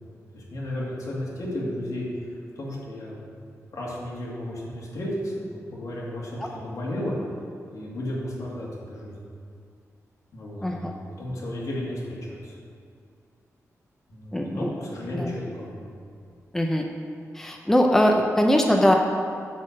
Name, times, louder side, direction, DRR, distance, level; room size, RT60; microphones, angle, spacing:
voice 1, 0.3-2.1 2.6-3.2 3.7-7.1 7.7-9.2 10.3-10.9 11.2-12.6 14.1-15.8, left 1 dB, 70° left, -5 dB, 2.4 m, -33 dB
voice 2, 14.3-14.7 15.2-15.3 16.5-16.9 17.4-19.0, equal, 5° left, 2 dB, 0.6 m, -21 dB
10.0 x 4.4 x 7.4 m, 2.3 s
wide cardioid pair, 120°, 6 cm